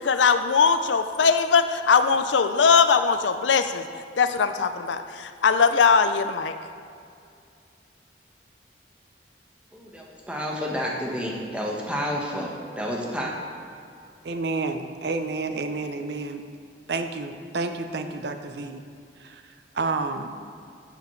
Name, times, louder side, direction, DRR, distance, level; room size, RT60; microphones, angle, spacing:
voice 1, 0.0-3.8 4.2-6.5, left 5 dB, 85° left, 9 dB, 0.5 m, -20 dB
voice 2, 9.7-13.3, equal, 5° right, -2 dB, 1.1 m, -30 dB
voice 3, 14.2-16.4 16.9-18.8 19.2-19.4 19.7-20.3, right 3 dB, 60° right, 7 dB, 0.6 m, -30 dB
12.0 x 6.9 x 3.2 m, 2.4 s
head